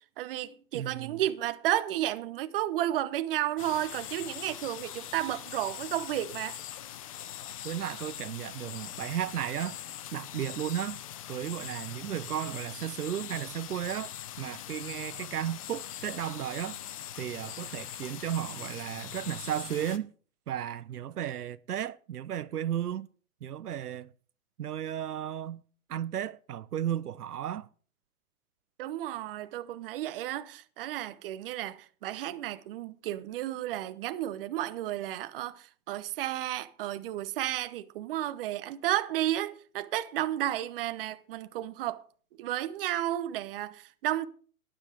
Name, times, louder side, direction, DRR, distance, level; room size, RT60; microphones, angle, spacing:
voice 1, 0.2-6.6 28.8-42.0 42.4-44.2, right 13 dB, 40° right, 0.9 m, -32 dB
voice 2, 0.7-1.2 7.6-9.8 10.1-11.0 11.3-14.1 14.4-16.8 17.1-20.1 20.5-23.1 23.4-24.1 24.6-25.6 25.9-27.7, right 10 dB, 90° right, 0.7 m, -34 dB
sound 1, 3.6-20.0, left 11 dB, 25° left, 0.5 m, -42 dB
12.5 x 9.9 x 4.9 m
hypercardioid pair, 140°, 44 cm